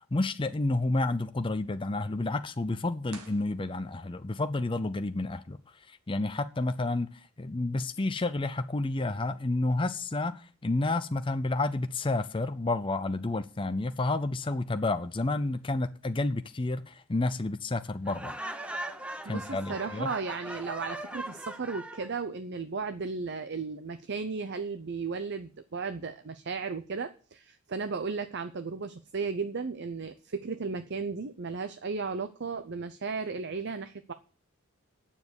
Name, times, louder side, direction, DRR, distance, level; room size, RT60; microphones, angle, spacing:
voice 1, 0.1-5.6 5.9-18.3 19.3-20.1, left 2 dB, 25° left, 0.5 m, -30 dB
sound 1, 3.1-4.3, right 5 dB, 90° right, 1.8 m, -52 dB
Laughter, 18.1-22.1, right 1 dB, 5° right, 0.8 m, -39 dB
voice 2, 19.2-34.1, right 4 dB, 50° right, 0.6 m, -35 dB
9.5 x 7.2 x 8.1 m
head